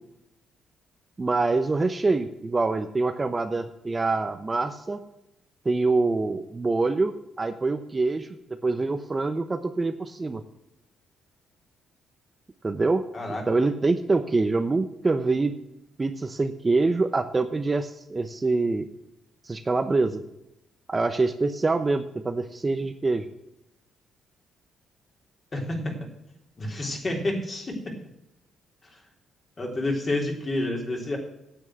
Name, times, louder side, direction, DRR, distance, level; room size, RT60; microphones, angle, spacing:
voice 1, 1.2-5.0 5.6-8.3 8.6-10.4 12.6-13.1 13.5-15.5 16.0-18.9 19.4-20.2 20.9-23.3, right 3 dB, 25° right, 8 dB, 0.8 m, -25 dB
voice 2, 25.5-25.9 26.6-27.9 29.6-31.2, left 1 dB, 35° left, 1 dB, 3.5 m, -29 dB
9.6 x 8.2 x 8.0 m, 0.85 s
cardioid pair, 90°, 0 cm